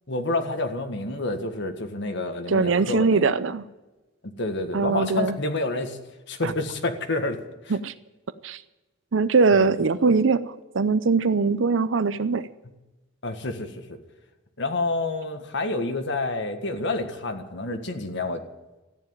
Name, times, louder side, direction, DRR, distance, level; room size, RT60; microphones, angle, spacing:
voice 1, 0.1-3.2 4.2-6.0 6.3-7.8 9.5-9.7 13.2-14.0 14.6-18.4, left 2 dB, 65° left, 6 dB, 1.7 m, -29 dB
voice 2, 2.5-3.6 4.7-5.3 6.4-6.5 7.7-7.9 8.4-8.6 9.1-10.4 10.7-12.5, right 4 dB, 70° right, 14 dB, 0.6 m, -21 dB
14.0 x 10.5 x 9.0 m, 1.1 s
head